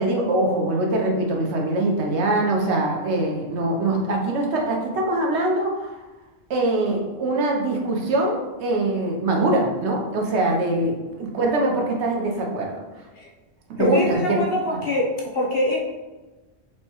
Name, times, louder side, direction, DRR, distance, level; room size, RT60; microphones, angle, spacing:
voice 1, 0.0-6.0 6.5-12.8 13.7-14.4 14.7-14.8, right 2 dB, 85° right, 0 dB, 1.0 m, -23 dB
voice 2, 13.8-15.0 15.3-15.8, left 1 dB, 60° left, -3 dB, 1.0 m, -24 dB
4.5 x 2.2 x 2.8 m, 1.2 s
omnidirectional pair, 1.1 m